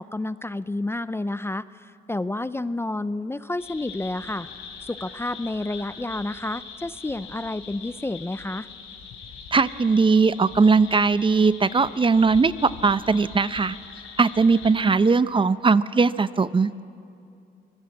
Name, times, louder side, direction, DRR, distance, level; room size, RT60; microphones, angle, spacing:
voice 1, 0.0-4.5 4.8-8.7, left 2 dB, 10° left, 15 dB, 0.5 m, -30 dB
sound 1, 3.6-14.7, left 6 dB, 85° left, 4.2 m, -42 dB
voice 2, 9.5-13.8 14.2-16.8, right 4 dB, 25° right, 15 dB, 0.6 m, -19 dB
24.5 x 20.0 x 8.5 m, 2.5 s
cardioid pair, 90°, 20 cm